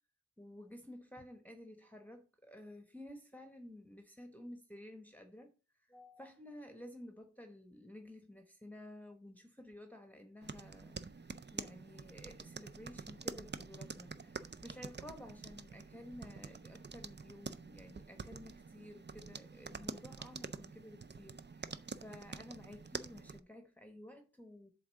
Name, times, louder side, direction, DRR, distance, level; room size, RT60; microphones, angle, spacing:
voice 1, 0.4-5.5 5.9-21.8 22.0-24.7, left 1 dB, 5° left, 1.0 m, -53 dB
sound 1, 10.4-23.4, right 4 dB, 35° right, 0.5 m, -47 dB
7.9 x 3.6 x 6.3 m
wide cardioid pair, 65°, 29 cm